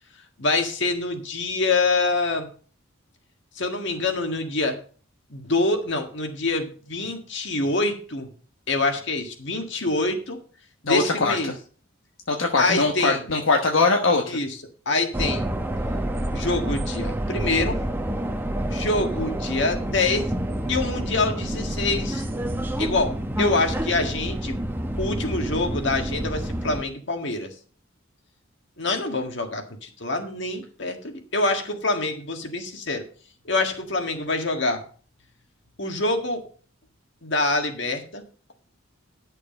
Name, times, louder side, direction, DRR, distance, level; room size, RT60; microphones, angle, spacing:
voice 1, 0.4-2.5 3.6-4.8 5.3-8.3 8.7-10.4 10.8-11.5 12.6-13.2 14.3-14.6 14.8-15.5 16.3-17.8 18.7-20.3 20.7-22.2 22.8-24.6 25.0-27.5 28.8-33.0 33.4-34.8 35.8-36.4 37.2-38.2, left 2 dB, 60° left, 5 dB, 1.8 m, -25 dB
voice 2, 10.9-11.6 12.3-14.4, left 3 dB, 75° left, 2 dB, 1.2 m, -22 dB
sound 1, 15.1-26.8, right 1 dB, 10° right, 0.9 m, -28 dB
11.0 x 6.6 x 5.3 m, 0.42 s
head